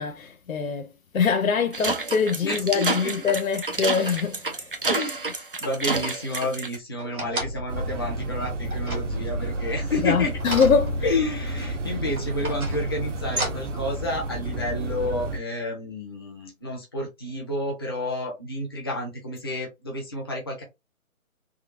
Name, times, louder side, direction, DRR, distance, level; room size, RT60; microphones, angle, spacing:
voice 1, 0.0-4.7 10.0-11.0, left 6 dB, 65° left, 0.6 m, -24 dB
sound 1, 1.7-6.8, right 3 dB, 40° right, 0.5 m, -29 dB
voice 2, 2.4-3.1 4.8-10.4 11.0-20.6, left 1 dB, 15° left, 0.7 m, -30 dB
sound 2, 7.0-7.8 8.7-9.6 10.4-11.5 12.2-13.8 14.5-14.6, equal, 80° right, 1.6 m, -32 dB
sound 3, 7.7-15.4, right 1 dB, 55° right, 0.8 m, -31 dB
3.6 x 2.6 x 2.6 m
figure-of-eight pair, 150°, 43 cm